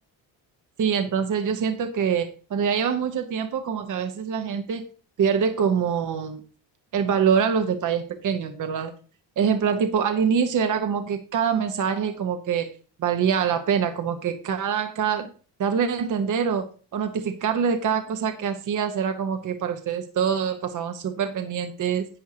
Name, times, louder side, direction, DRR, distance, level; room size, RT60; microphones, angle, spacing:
voice 1, 0.8-4.8 5.2-6.4 6.9-8.9 9.4-12.7 13.0-15.3 15.6-16.6 16.9-22.1, right 7 dB, 50° right, 7 dB, 1.1 m, -24 dB
11.0 x 8.2 x 2.8 m, 0.38 s
cardioid pair, 105°, 40 cm